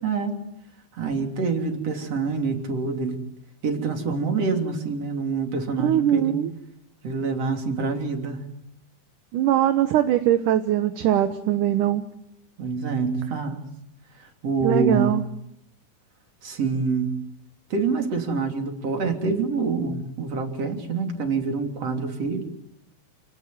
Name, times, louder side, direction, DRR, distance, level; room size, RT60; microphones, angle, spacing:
voice 1, 0.0-0.4 0.9-3.2 3.6-6.4 7.0-8.4 12.6-13.6 14.2-15.1 16.4-17.2 17.7-22.4, right 4 dB, 40° right, 4 dB, 4.0 m, -26 dB
voice 2, 5.8-6.5 9.3-12.0 14.6-15.2, right 11 dB, 65° right, 9 dB, 2.3 m, -21 dB
29.0 x 19.0 x 9.2 m, 0.79 s
omnidirectional pair, 4.4 m